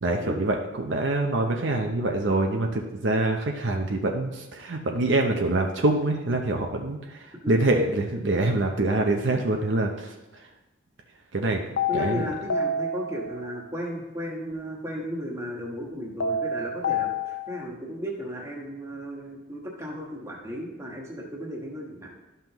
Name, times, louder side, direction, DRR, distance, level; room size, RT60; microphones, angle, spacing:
voice 1, 0.0-10.1 11.3-11.6 11.9-12.2, right 2 dB, 60° right, 2 dB, 0.6 m, -25 dB
sound 1, 11.8-13.6 16.2-17.7, left 3 dB, 60° left, 0.4 m, -29 dB
voice 2, 11.9-22.1, equal, 15° right, -2 dB, 1.3 m, -35 dB
12.0 x 5.6 x 3.0 m, 1.0 s
head